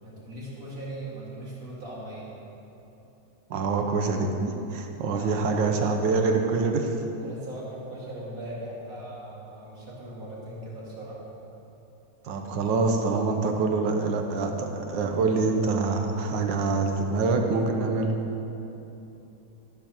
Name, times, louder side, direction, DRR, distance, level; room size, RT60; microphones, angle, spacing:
voice 1, 0.0-2.4 5.1-5.4 7.1-11.2, right 1 dB, 50° right, -6 dB, 2.5 m, -39 dB
voice 2, 3.5-6.9 12.2-18.1, right 3 dB, 85° right, 4 dB, 1.5 m, -25 dB
13.5 x 11.5 x 3.0 m, 3.0 s
omnidirectional pair, 2.0 m